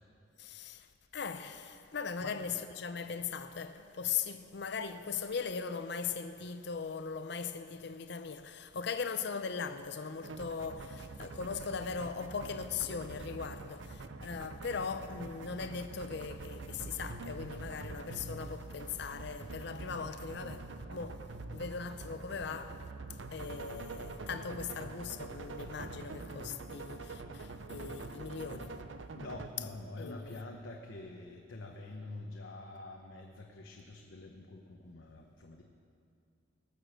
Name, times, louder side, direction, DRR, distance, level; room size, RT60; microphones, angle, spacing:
voice 1, 0.4-0.9 1.1-20.7 20.9-21.2 21.5-22.8 23.3-28.8 30.0-30.4, left 5 dB, 60° left, 0.6 m, -39 dB
sound 1, 10.2-29.5, right 3 dB, 70° right, 0.7 m, -45 dB
voice 2, 29.1-35.6, left 2 dB, 80° left, 1.0 m, -46 dB
19.0 x 7.0 x 6.4 m
head